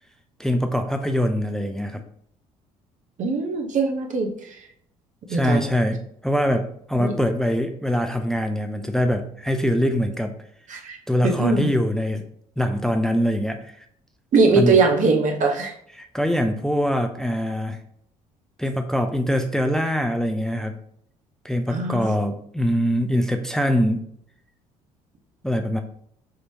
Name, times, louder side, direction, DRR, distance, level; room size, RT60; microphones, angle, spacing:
voice 1, 0.4-2.0 5.3-10.3 11.1-12.2 12.6-13.8 14.5-14.8 16.0-17.8 18.6-20.8 21.4-24.0 25.4-25.8, equal, ahead, 6 dB, 0.4 m, -23 dB
voice 2, 3.2-4.5 5.3-5.7 7.0-7.1 10.7-11.0 11.2-11.7 14.3-15.7 21.7-22.2, right 4 dB, 45° right, 2 dB, 0.9 m, -21 dB
4.9 x 3.0 x 2.8 m, 0.66 s
figure-of-eight pair, 50°, 18 cm